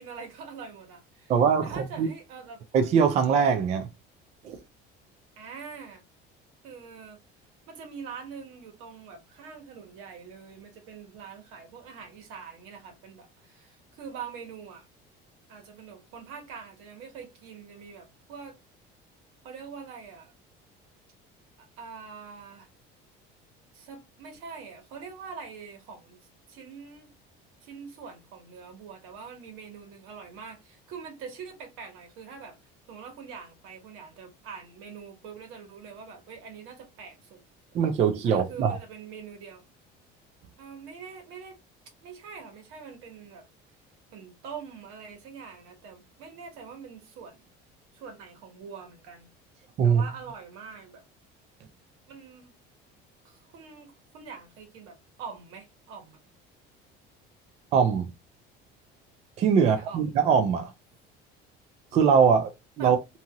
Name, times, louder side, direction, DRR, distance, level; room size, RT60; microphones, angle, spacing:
voice 1, 0.0-1.3 1.6-2.6 5.4-6.0 6.6-7.2 7.7-14.9 15.5-18.6 19.4-20.3 21.6-22.7 23.7-26.2 26.5-27.1 27.6-32.6 32.9-37.4 38.2-39.6 40.6-41.6 42.0-43.5 44.1-47.5 47.9-49.3 49.8-51.0 52.1-52.5 53.2-56.2 59.6-60.0 62.8-63.0, right 6 dB, 85° right, 1.3 m, -44 dB
voice 2, 1.3-2.1 2.7-3.9 4.4-4.6 37.7-38.8 49.8-50.0 57.7-58.1 59.4-60.7 61.9-63.0, right 6 dB, 35° right, 0.4 m, -22 dB
2.7 x 2.4 x 2.8 m
cardioid pair, 175°, 20 cm